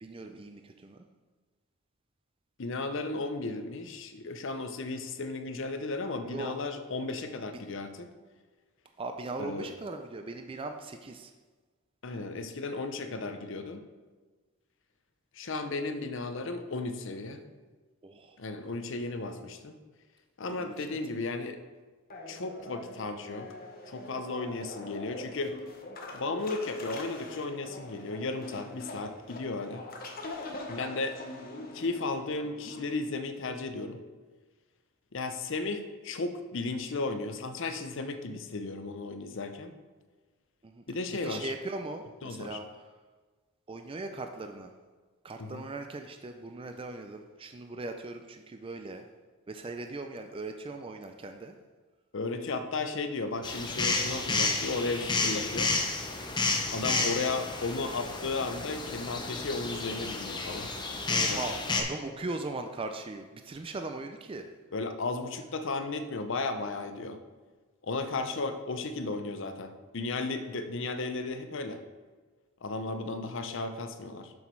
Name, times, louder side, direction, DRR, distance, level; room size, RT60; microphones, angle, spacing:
voice 1, 0.0-1.1 6.2-6.5 7.5-7.6 9.0-11.3 18.0-18.4 20.5-20.9 40.6-40.8 41.1-42.9 43.7-44.7 45.2-49.1 49.5-51.5 61.1-64.5, right 2 dB, 25° right, 6 dB, 0.4 m, -39 dB
voice 2, 2.6-8.1 9.4-9.7 12.0-13.8 15.3-17.4 18.4-19.8 20.4-21.6 22.3-23.5 23.9-25.6 26.1-29.9 30.7-31.2 31.7-34.0 35.1-39.8 40.9-41.5 42.2-42.6 45.4-45.7 52.1-55.7 56.7-60.7 61.3-61.4 64.7-67.2 67.8-71.8 72.6-74.3, left 3 dB, 60° left, 8 dB, 0.6 m, -34 dB
sound 1, 22.1-32.9, left 2 dB, 45° left, 1.0 m, -43 dB
sound 2, 53.4-61.8, left 3 dB, 20° left, 0.8 m, -31 dB
7.2 x 6.1 x 4.5 m, 1.4 s
head